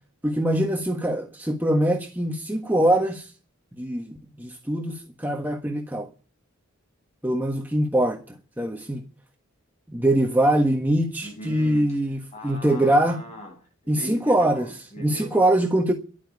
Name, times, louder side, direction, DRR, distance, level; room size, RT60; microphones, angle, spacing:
voice 1, 0.2-3.3 3.8-6.1 7.2-9.0 9.9-12.2 12.4-13.2 13.9-14.7 15.0-15.9, right 1 dB, 10° right, 1.4 m, -23 dB
voice 2, 11.2-15.6, left 1 dB, 35° left, 7.3 m, -40 dB
11.5 x 9.0 x 9.7 m
head